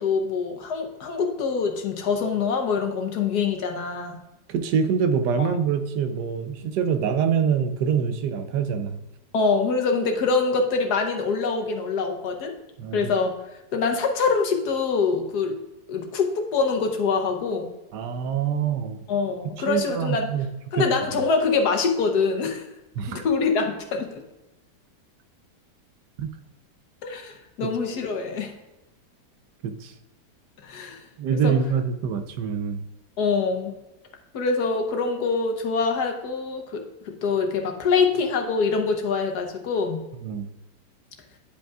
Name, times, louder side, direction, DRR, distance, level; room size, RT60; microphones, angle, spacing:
voice 1, 0.0-4.2 5.4-5.6 9.3-12.5 12.9-13.3 13.7-15.6 15.9-17.7 19.1-20.3 20.7-22.7 23.1-24.2 27.0-28.5 30.6-31.0 31.3-31.5 33.2-33.7 34.3-40.0, left 4 dB, 70° left, 3 dB, 1.4 m, -24 dB
voice 2, 4.5-9.0 12.8-13.1 17.9-19.0 19.6-20.5 20.7-20.8 23.0-23.2 26.2-26.3 27.6-27.7 29.6-29.9 31.2-32.8 40.2-40.5, right 7 dB, 75° right, 9 dB, 1.2 m, -25 dB
10.0 x 5.2 x 2.4 m, 1.0 s
omnidirectional pair, 1.9 m